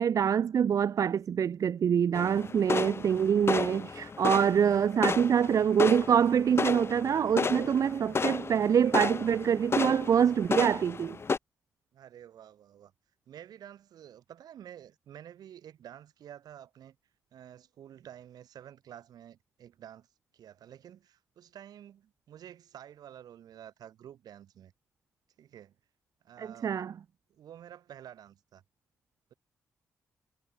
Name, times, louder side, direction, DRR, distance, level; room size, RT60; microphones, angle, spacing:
voice 1, 0.0-11.2 26.4-26.9, right 8 dB, 55° right, 0.4 m, -25 dB
sound 1, 2.1-11.4, left 4 dB, 40° left, 0.7 m, -33 dB
voice 2, 5.0-5.5 11.9-12.9 13.3-17.0 17.3-20.1 20.3-24.7 25.4-25.8 26.2-26.7 27.3-28.6, right 10 dB, 70° right, 7.4 m, -50 dB
hypercardioid pair, 40°, 7 cm